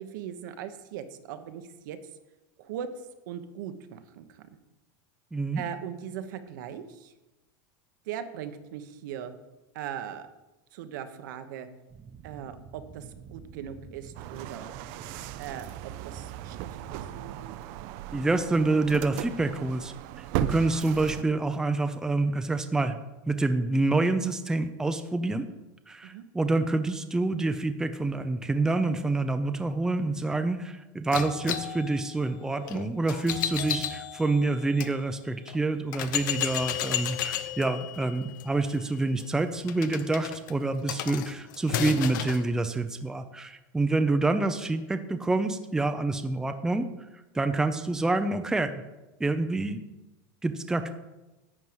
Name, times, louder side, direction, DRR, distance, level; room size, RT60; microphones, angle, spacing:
voice 1, 0.0-2.0 2.6-2.9 3.3-4.5 5.5-7.1 8.1-9.3 9.7-10.3 10.7-11.7 12.2-14.8 15.4-16.8 26.0-26.2, right 9 dB, 75° right, 9 dB, 1.1 m, -39 dB
voice 2, 5.3-5.6 18.1-23.0 23.3-25.5 25.9-46.9 47.3-48.7 49.2-49.8 50.4-50.9, right 2 dB, 5° right, 8 dB, 0.5 m, -27 dB
sound 1, 11.9-17.5, right 5 dB, 25° right, 0.9 m, -48 dB
sound 2, 14.1-21.2, right 13 dB, 55° right, 0.5 m, -36 dB
sound 3, 31.1-34.9 35.5-35.6 35.9-42.4, left 10 dB, 80° left, 0.9 m, -34 dB
11.0 x 4.5 x 8.0 m, 1.0 s
supercardioid pair, 145°, 10 cm